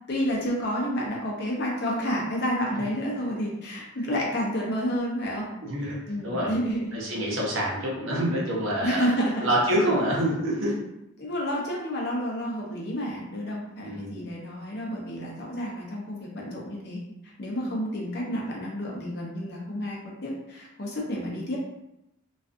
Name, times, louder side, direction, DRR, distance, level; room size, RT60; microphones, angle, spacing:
voice 1, 0.1-5.5 6.1-7.0 8.8-9.5 11.2-17.0 17.4-21.6, equal, 50° left, -3 dB, 0.6 m, -30 dB
voice 2, 5.6-6.6 6.9-9.1 9.4-10.7 13.8-14.1, right 1 dB, 65° right, -4 dB, 0.7 m, -26 dB
2.4 x 2.3 x 2.5 m, 0.87 s
head